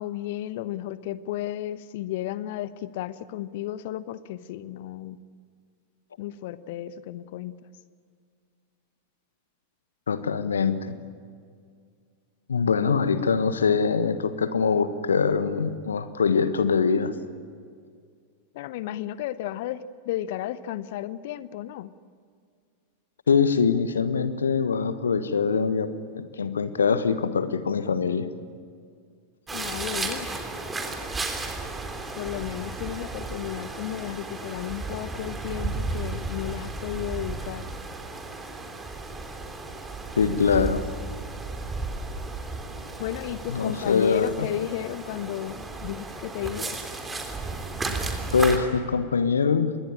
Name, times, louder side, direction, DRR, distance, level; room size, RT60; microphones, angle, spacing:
voice 1, 0.0-5.2 6.2-7.5 12.8-12.9 18.5-21.9 29.5-30.3 32.2-37.7 43.0-46.8, left 13 dB, 50° left, 16 dB, 1.0 m, -33 dB
voice 2, 10.1-11.0 12.5-17.1 23.3-28.3 40.2-40.8 43.5-44.5 48.3-49.8, left 5 dB, 70° left, 12 dB, 1.4 m, -23 dB
sound 1, 29.5-48.6, right 3 dB, 15° right, 3.4 m, -34 dB
27.0 x 21.5 x 8.7 m, 2.1 s
figure-of-eight pair, 90°, 0 cm